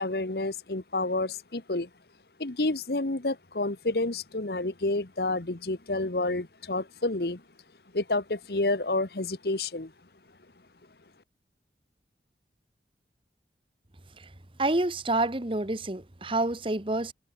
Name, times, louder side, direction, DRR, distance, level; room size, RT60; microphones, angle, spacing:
voice 1, 0.0-1.9 2.4-7.4 7.9-9.9, left 2 dB, 60° left, 1.3 m, -29 dB
voice 2, 14.6-17.1, right 2 dB, 30° right, 1.2 m, -28 dB
head